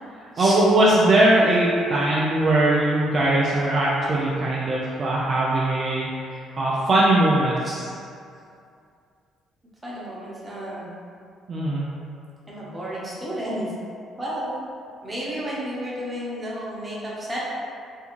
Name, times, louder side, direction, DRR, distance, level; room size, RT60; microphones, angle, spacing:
voice 1, 0.4-6.1 6.5-7.8 11.5-11.9, right 1 dB, 50° right, -5 dB, 0.4 m, -20 dB
voice 2, 9.8-10.9 12.5-13.6 14.2-14.5 15.0-17.4, equal, 25° right, -7 dB, 0.9 m, -32 dB
2.6 x 2.3 x 2.9 m, 2.4 s
supercardioid pair, 65°, 0 cm